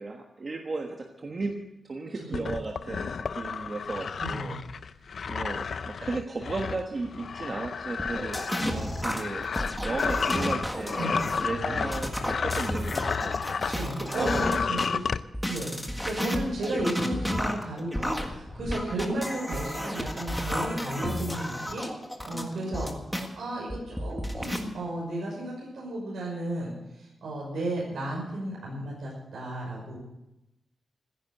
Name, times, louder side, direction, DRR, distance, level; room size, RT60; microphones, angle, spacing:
voice 1, 0.0-1.6 1.9-4.6 5.3-9.5 9.8-13.4 13.9-14.8 22.3-22.7, right 3 dB, 35° right, 2 dB, 1.3 m, -35 dB
sound 1, 2.3-13.8 14.1-15.2, left 5 dB, 55° left, 0.5 m, -32 dB
sound 2, 8.0-14.9 15.3-23.3 23.7-24.6, equal, ahead, 1.7 m, -32 dB
voice 2, 13.5-15.0 15.5-21.9 22.2-26.7 27.0-30.0, right 1 dB, 85° right, -4 dB, 5.8 m, -34 dB
15.5 x 10.0 x 7.9 m, 0.92 s
wide cardioid pair, 145°, 0 cm